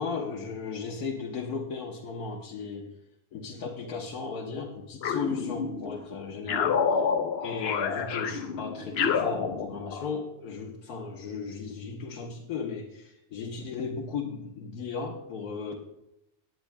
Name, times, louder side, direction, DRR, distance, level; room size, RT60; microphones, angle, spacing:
voice 1, 0.0-2.9 3.3-7.1 7.4-15.8, left 5 dB, 85° left, -1 dB, 1.5 m, -36 dB
sound 1, 5.0-6.0 6.5-10.1, left 6 dB, 55° left, 0.7 m, -28 dB
18.5 x 9.4 x 2.2 m, 0.84 s
omnidirectional pair, 1.6 m